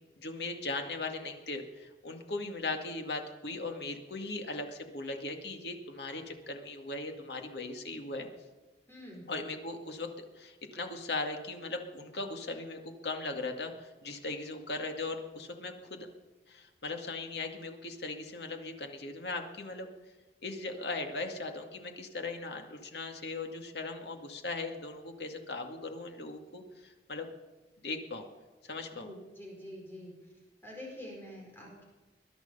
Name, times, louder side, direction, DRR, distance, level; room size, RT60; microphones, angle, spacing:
voice 1, 0.2-8.3 9.3-16.1 16.5-19.9 20.4-27.3 27.8-28.3 28.6-29.1, left 3 dB, 70° left, 4 dB, 2.1 m, -38 dB
voice 2, 8.9-9.3 29.0-30.1 30.6-31.8, left 1 dB, 15° left, -2 dB, 4.8 m, -46 dB
21.0 x 11.0 x 5.5 m, 1.2 s
head